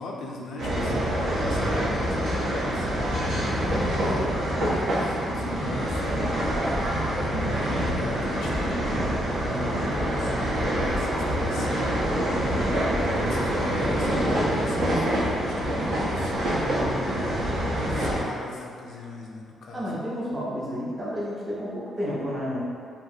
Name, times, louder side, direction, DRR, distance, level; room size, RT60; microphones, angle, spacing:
voice 1, 0.0-6.5 7.7-12.0 12.9-17.3 17.9-19.9, left 2 dB, 65° left, -2 dB, 0.4 m, -40 dB
sound 1, 0.6-18.2, equal, 75° right, 0.7 m, -26 dB
voice 2, 7.3-7.7 19.7-22.6, equal, 20° right, -7 dB, 0.5 m, -31 dB
2.9 x 2.4 x 2.6 m, 2.4 s
cardioid pair, 145°, 0 cm